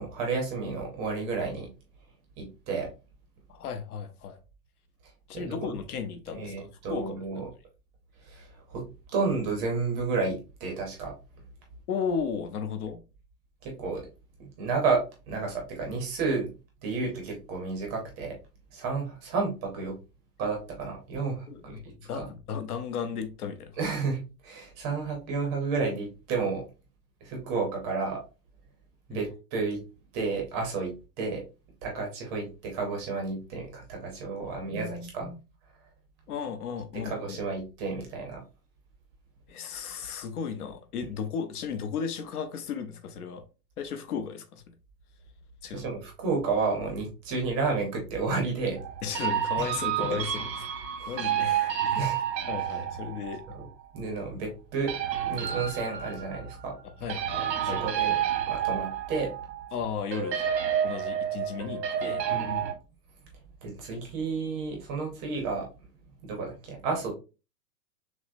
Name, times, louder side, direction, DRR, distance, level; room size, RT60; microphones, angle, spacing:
voice 1, 0.0-1.7 2.4-2.9 5.3-5.7 6.3-7.4 8.2-8.8 9.1-11.1 13.6-14.0 14.4-16.5 16.8-18.3 18.7-20.0 20.4-21.8 22.1-22.3 23.8-26.6 27.2-28.2 29.1-29.8 30.1-31.4 31.8-35.3 37.0-38.4 45.7-48.8 49.6-49.7 50.0-50.1 51.0-51.1 52.0-52.2 53.5-53.6 53.9-54.9 55.2-56.7 57.3-57.4 57.8-58.2 58.5-59.3 62.3-62.7 63.6-65.7 66.2-67.1, right 4 dB, 15° right, 0.6 m, -31 dB
voice 2, 3.5-4.4 5.3-7.2 11.9-13.0 21.5-23.8 29.1-29.3 34.4-35.4 36.3-37.4 39.5-43.5 43.8-44.6 45.6-45.9 49.0-50.7 51.1-52.1 52.5-53.4 57.0-58.1 59.7-60.4 60.8-62.2, left 6 dB, 65° left, 0.8 m, -35 dB
sound 1, 48.8-53.7 54.9-56.6 57.1-59.8 60.1-62.7, right 9 dB, 90° right, 1.2 m, -30 dB
6.1 x 2.1 x 2.5 m
hypercardioid pair, 160°, 50 cm